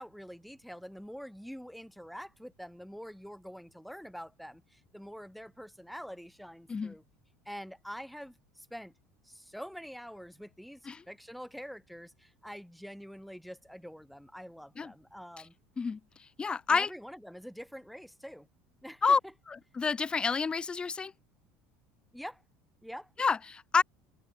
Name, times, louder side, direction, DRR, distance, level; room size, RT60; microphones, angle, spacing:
voice 1, 0.0-7.0 7.5-8.9 9.2-15.5 16.7-18.5 18.8-19.0 22.1-22.4 22.8-23.1, equal, ahead, 1.8 m, -46 dB
voice 2, 16.4-16.9 19.0-19.2 19.5-21.1 23.2-23.8, left 5 dB, 20° left, 0.4 m, -28 dB
supercardioid pair, 105°, 5 cm